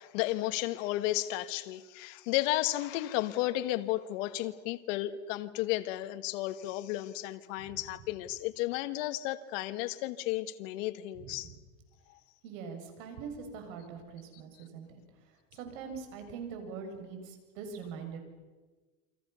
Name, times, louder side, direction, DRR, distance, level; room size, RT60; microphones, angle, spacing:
voice 1, 0.0-11.5 12.1-12.2, left 15 dB, 65° left, 1.6 m, -33 dB
voice 2, 11.2-11.5 12.4-14.9 15.5-18.2, right 6 dB, 70° right, 7.5 m, -43 dB
29.0 x 25.5 x 7.0 m
supercardioid pair, 155°, 41 cm